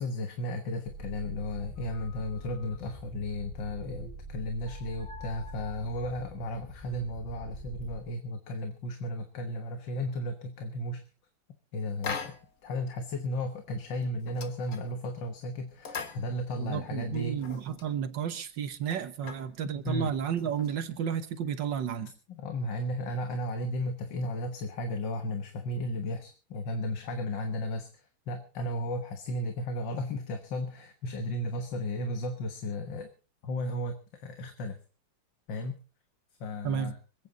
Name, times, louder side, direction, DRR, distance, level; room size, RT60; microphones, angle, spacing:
voice 1, 0.0-11.1 11.7-17.4 19.2-19.3 19.8-20.1 22.3-33.1 33.4-34.8 35.5-35.8 36.4-37.0, left 1 dB, 60° left, 2.0 m, -34 dB
sound 1, 0.9-8.0, equal, 20° right, 4.8 m, -44 dB
sound 2, 12.0-12.7 13.0-13.1 13.5-13.7 14.0-15.2 15.7-16.8 17.2-17.9 18.4-18.5 18.7-19.5 20.2-21.1, left 5 dB, 40° left, 1.5 m, -40 dB
voice 2, 16.6-22.1 36.6-36.9, right 8 dB, 60° right, 1.7 m, -32 dB
26.0 x 9.1 x 4.0 m
omnidirectional pair, 2.3 m